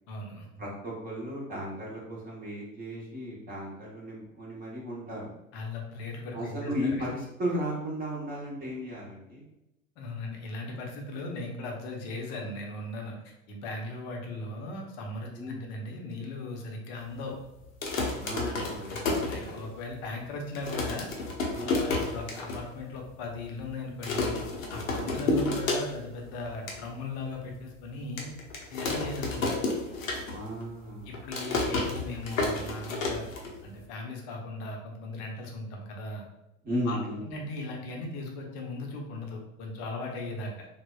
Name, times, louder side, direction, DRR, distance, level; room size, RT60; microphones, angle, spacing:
voice 1, 0.1-0.6 5.5-7.1 10.0-17.4 18.4-21.1 21.6-24.4 24.7-28.3 28.7-29.6 31.0-33.3 33.6-36.3 36.9-37.0 37.3-40.7, left 2 dB, 40° left, 1 dB, 0.7 m, -38 dB
voice 2, 0.6-5.3 6.3-9.4 15.3-15.7 18.2-18.9 21.5-21.8 24.8-25.3 30.3-31.1 36.6-37.2, equal, 20° right, -4 dB, 0.8 m, -35 dB
sound 1, 17.6-19.9 20.3-20.4 20.5-22.6 23.0-23.1 23.3-23.6 24.0-26.2 26.5-26.8 27.3-27.4 28.2-30.6 30.9-33.8, left 3 dB, 70° left, 0.7 m, -31 dB
3.4 x 2.1 x 2.3 m, 0.91 s
figure-of-eight pair, 80°, 41 cm